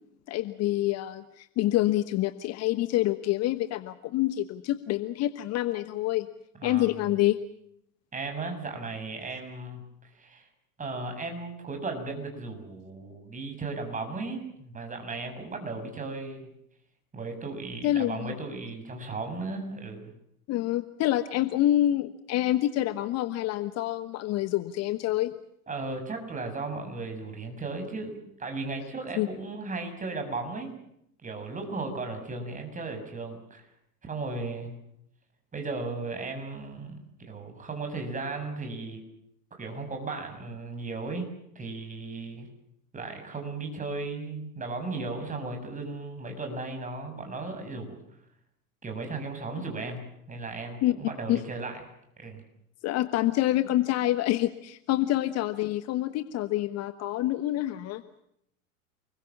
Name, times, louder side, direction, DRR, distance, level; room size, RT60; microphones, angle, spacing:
voice 1, 0.3-6.3 6.6-7.4 17.8-18.3 20.5-25.3 29.2-29.3 50.8-50.9 51.3-51.4 52.8-58.0, left 14 dB, 35° left, 13 dB, 1.2 m, -27 dB
voice 2, 6.6-6.9 8.1-9.8 10.1-10.5 10.8-16.4 17.1-20.1 25.7-30.7 31.2-33.7 34.0-34.8 35.5-39.0 39.5-41.3 41.6-42.5 42.9-48.0 48.8-51.8 52.2-52.4, right 3 dB, 15° right, 5 dB, 6.9 m, -36 dB
29.0 x 22.0 x 7.3 m, 0.75 s
figure-of-eight pair, 95°, 45 cm